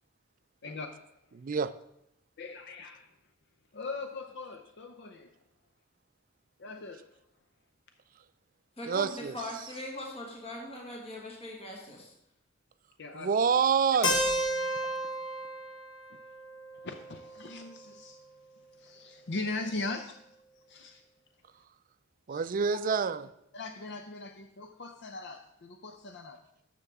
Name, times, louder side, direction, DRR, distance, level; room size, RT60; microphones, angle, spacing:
voice 1, 0.6-1.0 2.4-3.1 3.7-5.3 6.6-7.0 13.0-13.3 16.8-18.2 18.8-20.2 20.7-21.0 22.3-22.4 23.5-26.4, left 3 dB, 55° left, 7 dB, 0.6 m, -40 dB
voice 2, 1.3-1.7 8.9-9.3 13.1-14.2 22.3-23.3, right 6 dB, 40° right, 13 dB, 0.4 m, -27 dB
voice 3, 8.8-12.1, left 1 dB, 30° left, -1 dB, 1.6 m, -40 dB
Keyboard (musical), 14.0-17.9, equal, 75° left, 1.2 m, -33 dB
12.5 x 6.9 x 3.6 m, 0.79 s
head